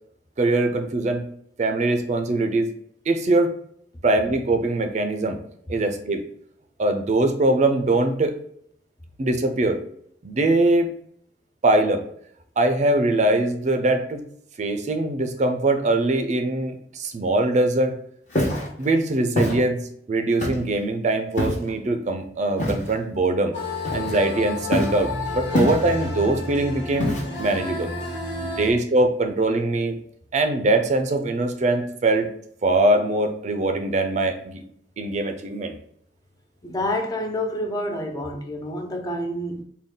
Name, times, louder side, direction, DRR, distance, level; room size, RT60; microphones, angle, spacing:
voice 1, 0.4-1.3 1.6-2.7 3.1-3.5 4.0-5.4 5.7-6.2 6.8-8.3 9.2-9.8 10.2-10.9 11.6-12.1 12.6-14.2 14.6-18.0 18.8-19.8 20.1-23.5 23.9-27.9 28.4-29.9 30.3-32.3 32.6-34.6 35.0-35.7, right 2 dB, 40° right, 0.4 m, -22 dB
Walk footsteps, 18.3-18.7 19.4-19.6 20.4-20.8 21.4-21.7 22.6-22.9 23.8-24.3 24.7-25.0 25.5-26.1 27.0-27.5, left 1 dB, 45° left, 1.0 m, -24 dB
sound 1, 23.5-28.7, left 2 dB, 85° left, 1.5 m, -31 dB
voice 2, 36.6-39.6, left 1 dB, 20° left, 0.4 m, -28 dB
3.8 x 2.2 x 3.6 m
head